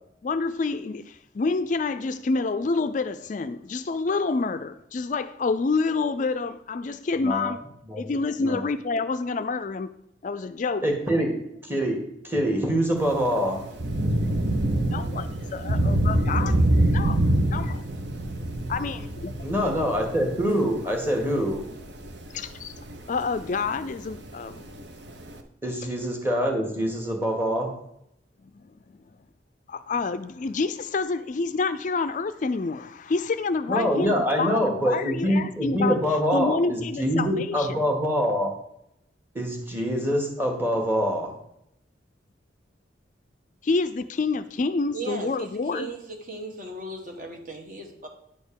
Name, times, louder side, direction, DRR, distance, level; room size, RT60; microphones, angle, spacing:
voice 1, 0.2-7.6 8.0-9.9 10.2-10.8 14.9-16.7 16.9-17.2 17.5-17.8 18.7-19.3 22.3-22.7 23.1-24.9 28.5-28.7 29.7-36.0 36.3-37.8 43.6-45.9, left 4 dB, 40° left, 12 dB, 0.4 m, -28 dB
voice 2, 7.2-7.5 7.9-8.1 8.4-8.6 10.8-11.3 11.6-12.0 12.2-13.6 19.4-21.6 25.6-27.7 33.7-38.5 39.3-41.3, equal, 10° right, 2 dB, 1.7 m, -25 dB
Thunder / Rain, 13.0-25.4, right 1 dB, 65° right, 0.9 m, -27 dB
voice 3, 44.9-48.1, right 3 dB, 45° right, 3 dB, 1.5 m, -37 dB
9.8 x 4.3 x 6.9 m, 0.77 s
head